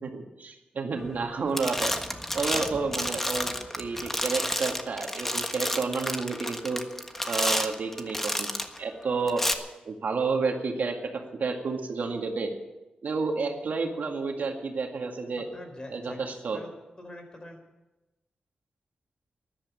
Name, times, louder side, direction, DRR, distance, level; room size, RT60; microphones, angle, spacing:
voice 1, 0.0-1.9 2.3-6.8 7.3-9.4 9.9-12.5 13.0-15.5 15.9-16.6, right 4 dB, 70° right, 3 dB, 2.1 m, -30 dB
sound 1, 1.0-1.3 1.5-8.8 9.3-9.5, left 1 dB, 10° left, 1.4 m, -30 dB
voice 2, 15.4-17.6, left 1 dB, 25° left, 5 dB, 4.2 m, -44 dB
13.5 x 11.5 x 8.4 m, 1.0 s
wide cardioid pair, 85°, 3 cm